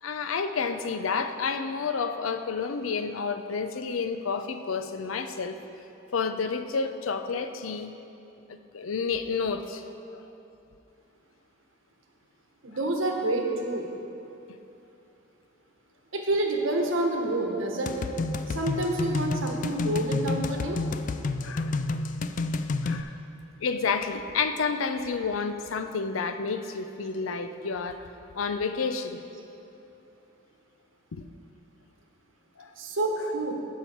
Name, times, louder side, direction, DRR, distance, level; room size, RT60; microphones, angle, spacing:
voice 1, 0.0-5.6 6.1-7.9 8.5-9.8 10.1-10.2 21.4-21.8 22.8-23.2 23.6-28.1 28.3-29.2 31.1-31.2 32.6-32.7, left 5 dB, 90° left, 8 dB, 0.5 m, -30 dB
voice 2, 12.6-13.9 16.1-18.1 18.5-20.8 32.8-33.5, right 1 dB, 75° right, 1 dB, 1.2 m, -28 dB
sound 1, 17.9-23.0, left 3 dB, 40° left, 0.3 m, -30 dB
14.0 x 5.7 x 4.5 m, 2.9 s
head